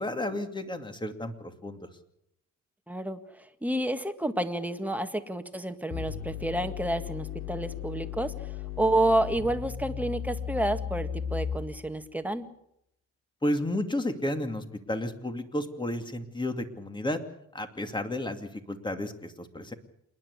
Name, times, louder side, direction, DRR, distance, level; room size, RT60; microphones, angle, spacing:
voice 1, 0.0-1.8 13.4-17.2 17.5-19.7, left 1 dB, 15° left, 7 dB, 2.5 m, -32 dB
voice 2, 2.9-8.3 8.8-12.5, right 1 dB, 5° right, 7 dB, 1.9 m, -29 dB
sound 1, 5.9-11.9, left 8 dB, 55° left, 4.3 m, -36 dB
27.5 x 11.0 x 9.8 m, 0.79 s
cardioid pair, 90°, 30 cm